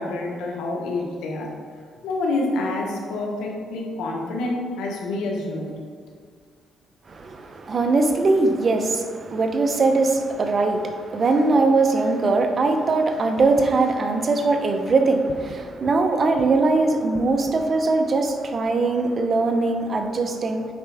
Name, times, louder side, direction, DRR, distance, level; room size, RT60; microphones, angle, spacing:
voice 1, 0.0-1.5 2.0-5.8, left 2 dB, 90° left, 0 dB, 1.4 m, -27 dB
voice 2, 7.1-20.7, right 3 dB, 40° right, 6 dB, 0.8 m, -21 dB
8.6 x 5.5 x 3.5 m, 2.1 s
cardioid pair, 90°, 0 cm